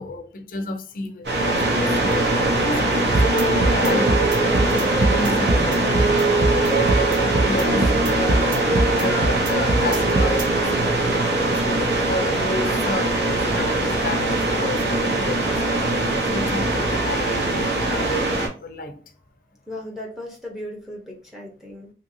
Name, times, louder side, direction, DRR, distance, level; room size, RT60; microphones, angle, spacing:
voice 1, 0.0-15.9 16.3-19.0, left 1 dB, 50° left, 0.5 m, -31 dB
sound 1, 1.2-18.5, right 2 dB, 75° right, 0.9 m, -22 dB
sound 2, 3.1-10.4, right 2 dB, 50° right, 0.4 m, -22 dB
sound 3, 3.8-13.0, right 3 dB, 20° right, 1.1 m, -28 dB
voice 2, 19.7-21.9, left 1 dB, ahead, 0.8 m, -36 dB
2.8 x 2.6 x 2.6 m
head